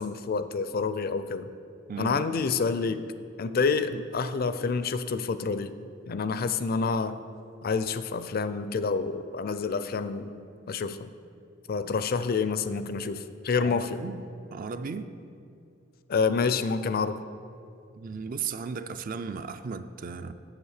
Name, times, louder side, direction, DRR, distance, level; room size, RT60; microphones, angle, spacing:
voice 1, 0.0-1.5 2.0-3.1 3.4-5.7 6.1-7.2 7.6-10.3 10.7-11.1 11.7-14.0 16.1-17.2, left 5 dB, 50° left, 12 dB, 0.4 m, -28 dB
voice 2, 1.9-2.4 3.9-4.0 13.6-15.1 17.9-20.3, right 5 dB, 45° right, 10 dB, 0.4 m, -36 dB
8.1 x 7.5 x 6.5 m, 2.4 s
head